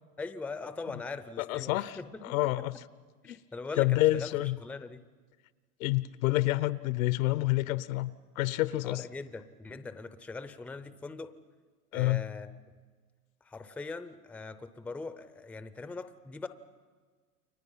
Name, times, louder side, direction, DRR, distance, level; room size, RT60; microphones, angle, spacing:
voice 1, 0.2-2.7 3.2-4.3 4.6-5.0 8.8-11.4 11.9-12.6 13.4-16.5, left 3 dB, 5° left, 11 dB, 0.6 m, -41 dB
voice 2, 1.4-2.7 3.3-3.4 3.8-4.6 5.8-8.1 8.4-9.0 11.9-12.2, left 18 dB, 60° left, 17 dB, 0.9 m, -28 dB
29.5 x 23.0 x 5.6 m, 1.5 s
hypercardioid pair, 125°, 45 cm